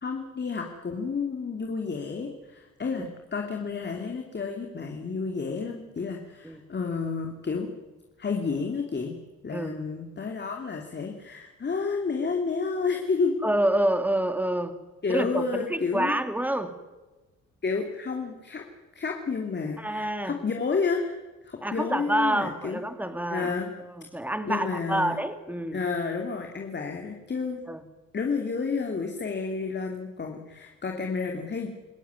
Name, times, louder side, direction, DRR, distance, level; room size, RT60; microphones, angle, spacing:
voice 1, 0.0-7.7 8.2-9.2 9.4-13.3 15.0-16.2 17.6-18.6 18.9-21.2 21.4-22.8 23.3-23.7 24.5-25.2 25.7-27.6 28.1-31.7, left 4 dB, 35° left, 2 dB, 3.0 m, -30 dB
voice 2, 13.4-14.8 15.1-16.7 19.8-20.4 21.6-23.5 23.8-25.8 27.7-27.8, right 1 dB, 5° right, 9 dB, 2.5 m, -28 dB
27.5 x 15.5 x 9.8 m, 1.2 s
cardioid pair, 90°, 30 cm